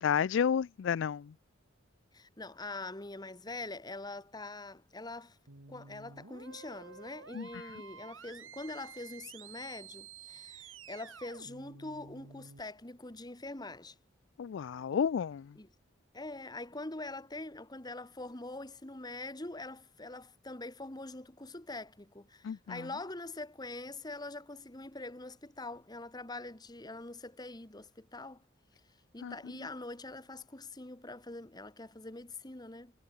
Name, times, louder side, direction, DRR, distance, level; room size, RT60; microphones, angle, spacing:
voice 1, 0.0-1.3 7.3-7.5 14.4-15.5 22.4-22.9 29.2-29.3, left 7 dB, 65° left, 0.3 m, -31 dB
voice 2, 2.1-5.4 5.7-13.9 15.6-15.7 16.1-28.4 29.1-32.9, left 2 dB, 20° left, 1.4 m, -44 dB
sound 1, 5.5-12.6, right 6 dB, 80° right, 2.4 m, -51 dB
head